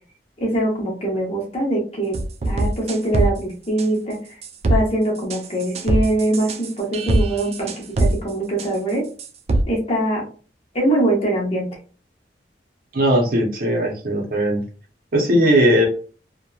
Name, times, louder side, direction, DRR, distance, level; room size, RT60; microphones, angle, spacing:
voice 1, 0.4-2.2 2.5-4.2 4.7-7.7 8.0-9.0 9.7-10.2 10.7-11.7, right 1 dB, 35° left, -2 dB, 0.9 m, -22 dB
sound 1, 2.1-3.3 3.8-3.9 4.4-4.8 5.3-8.1 8.6-8.7 9.2-9.6, right 2 dB, 35° right, 0.3 m, -21 dB
voice 2, 12.9-14.6 15.1-15.9, equal, 55° right, 1 dB, 0.7 m, -18 dB
2.9 x 2.1 x 2.3 m, 0.39 s
head